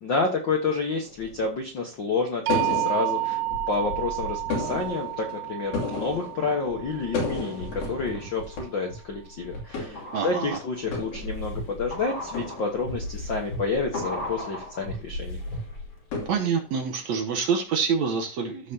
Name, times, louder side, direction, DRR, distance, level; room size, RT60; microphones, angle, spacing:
voice 1, 0.0-3.4 3.7-15.4, left 4 dB, 65° left, 2 dB, 1.1 m, -29 dB
sound 1, 0.7-1.5 2.5-8.6 8.9-9.0 9.4-10.5 10.8-11.8 12.2-13.2 13.9-14.8 16.1-17.1, left 3 dB, 90° left, 4.5 m, -34 dB
sound 2, 2.5-8.4, right 18 dB, 90° right, 2.4 m, -31 dB
sound 3, 6.9-7.6 8.1-16.0 16.2-16.3, left 1 dB, 30° left, 3.4 m, -36 dB
voice 2, 10.1-10.6 16.3-18.7, right 6 dB, 65° right, 5 dB, 1.9 m, -26 dB
14.5 x 5.7 x 2.8 m, 0.33 s
omnidirectional pair, 3.9 m